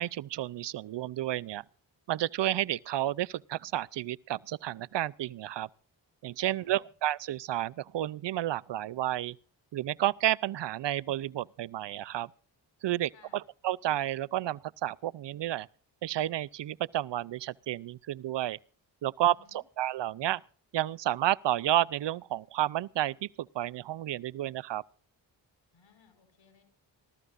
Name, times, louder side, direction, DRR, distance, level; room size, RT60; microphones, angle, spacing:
voice 1, 0.0-1.6 2.1-5.7 6.2-9.4 9.7-12.3 12.8-15.7 16.0-18.6 19.0-19.3 19.8-20.4 20.7-24.8, right 13 dB, 70° right, 0.6 m, -31 dB
voice 2, 6.5-6.9 13.1-13.4 19.3-19.6 25.7-26.6, left 5 dB, 75° left, 5.0 m, -62 dB
25.5 x 14.0 x 2.6 m
supercardioid pair, 40°, 45 cm